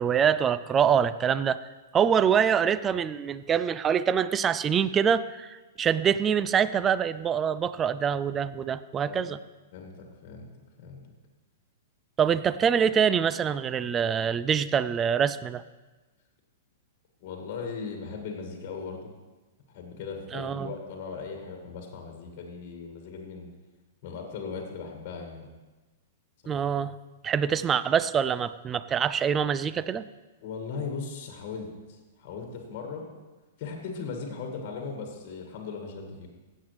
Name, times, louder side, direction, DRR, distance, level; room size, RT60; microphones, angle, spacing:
voice 1, 0.0-1.6 1.9-9.4 12.2-15.6 20.3-20.7 26.5-26.9 27.2-30.0, right 7 dB, 25° right, 15 dB, 0.4 m, -25 dB
voice 2, 9.7-10.5 10.8-11.0 17.2-19.1 19.7-23.5 24.0-25.5 26.4-26.7 30.4-33.1 33.6-36.3, left 5 dB, 45° left, 2 dB, 1.8 m, -38 dB
16.5 x 7.4 x 3.3 m, 1.2 s
hypercardioid pair, 110°, 0 cm